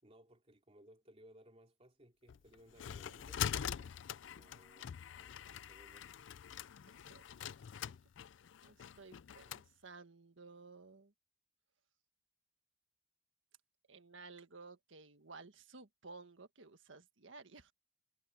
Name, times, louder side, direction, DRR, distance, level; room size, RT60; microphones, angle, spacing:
voice 1, 0.0-3.9 4.3-6.3, equal, 30° right, 3.2 m, -63 dB
sound 1, 2.3-9.7, left 9 dB, 70° left, 0.4 m, -44 dB
voice 2, 3.5-3.9 6.9-7.5 8.6-11.1 13.9-17.7, right 3 dB, 80° right, 1.6 m, -56 dB
head